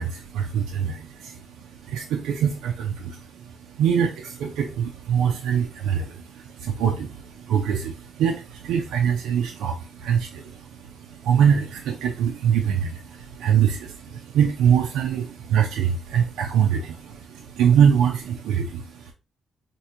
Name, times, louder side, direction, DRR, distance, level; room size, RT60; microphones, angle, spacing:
voice 1, 0.0-1.4 1.9-19.1, right 8 dB, 90° right, 1 dB, 0.5 m, -23 dB
4.3 x 2.6 x 2.5 m, 0.30 s
cardioid pair, 65°, 0 cm